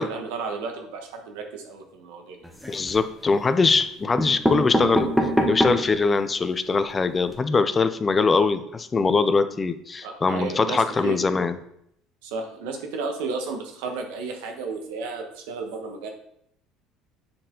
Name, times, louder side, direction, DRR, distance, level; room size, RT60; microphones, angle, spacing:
voice 1, 0.0-2.4 10.0-11.2 12.2-16.1, right 4 dB, 85° right, 4 dB, 1.2 m, -33 dB
sound 1, 2.4-3.1 3.8-3.9 4.2-6.0 6.5-6.6 6.8-6.9 7.2-7.3, equal, ahead, 1.0 m, -24 dB
voice 2, 2.7-5.1 5.5-11.6, left 4 dB, 25° left, 11 dB, 0.5 m, -22 dB
7.7 x 4.2 x 3.8 m, 0.73 s
supercardioid pair, 100°, 0 cm